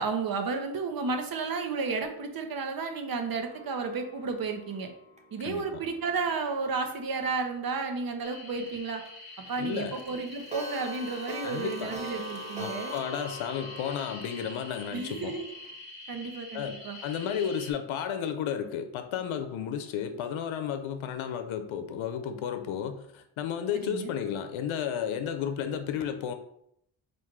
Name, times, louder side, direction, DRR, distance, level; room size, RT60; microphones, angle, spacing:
voice 1, 0.0-4.9 5.3-9.0 9.4-13.0 14.9-15.5 16.1-17.0 23.7-24.1, right 4 dB, 50° right, 5 dB, 0.8 m, -32 dB
Clock, 3.4-6.5 6.9-7.0 7.3-7.4 7.8-7.9 8.2-8.3 8.7-8.8 9.1-9.2 9.5-9.6 9.9-15.7, right 1 dB, 15° right, 0.6 m, -43 dB
voice 2, 5.4-5.8 9.6-10.0 11.4-11.9 12.6-15.3 16.5-26.3, left 8 dB, 85° left, 8 dB, 0.6 m, -33 dB
sound 1, 8.2-17.7, left 2 dB, 45° left, 1.2 m, -46 dB
4.5 x 2.6 x 3.6 m, 0.73 s
cardioid pair, 95°, 47 cm